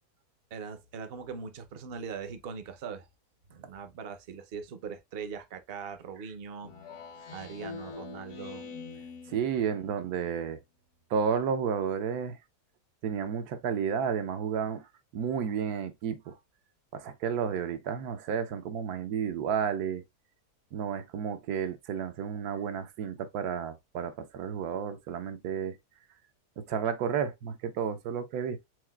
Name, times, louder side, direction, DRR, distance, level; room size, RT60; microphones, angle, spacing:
voice 1, 0.5-3.1 3.5-6.7 7.3-8.7, right 6 dB, 50° right, 0.7 m, -41 dB
Speech synthesizer, 6.6-10.1, left 5 dB, 70° left, 1.6 m, -44 dB
voice 2, 9.3-10.6 11.1-12.4 13.0-16.4 16.9-20.0 20.7-25.8 26.6-28.6, right 7 dB, 75° right, 1.1 m, -32 dB
4.8 x 3.9 x 2.3 m
omnidirectional pair, 1.7 m